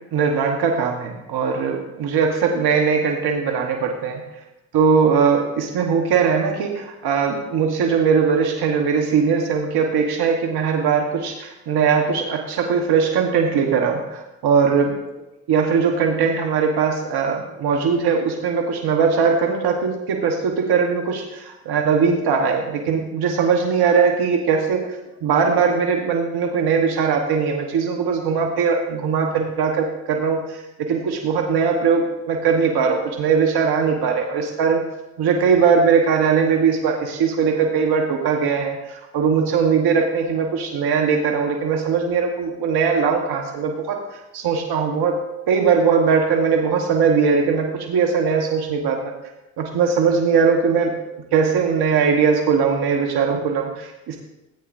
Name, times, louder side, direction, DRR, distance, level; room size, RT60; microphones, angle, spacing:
voice 1, 0.1-4.2 4.7-14.9 15.5-34.8 35.2-45.2 45.5-49.1 49.6-50.9 51.3-54.2, right 6 dB, 75° right, 2 dB, 1.2 m, -20 dB
15.0 x 8.6 x 2.6 m, 0.94 s
supercardioid pair, 50°, 39 cm